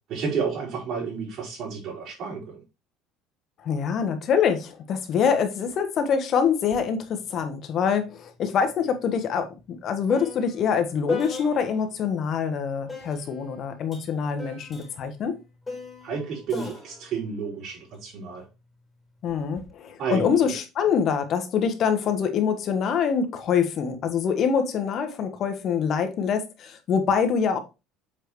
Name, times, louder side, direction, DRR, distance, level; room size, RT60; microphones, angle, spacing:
voice 1, 0.1-2.6 16.0-18.4 20.0-20.5, right 6 dB, 60° right, 4.5 m, -31 dB
voice 2, 3.6-15.4 19.2-27.6, left 7 dB, 50° left, 1.4 m, -25 dB
sound 1, 6.7-6.9 7.2-12.0 12.9-18.4 19.3-19.7, left 3 dB, 15° left, 3.8 m, -38 dB
7.4 x 5.0 x 3.2 m
supercardioid pair, 110°, 0 cm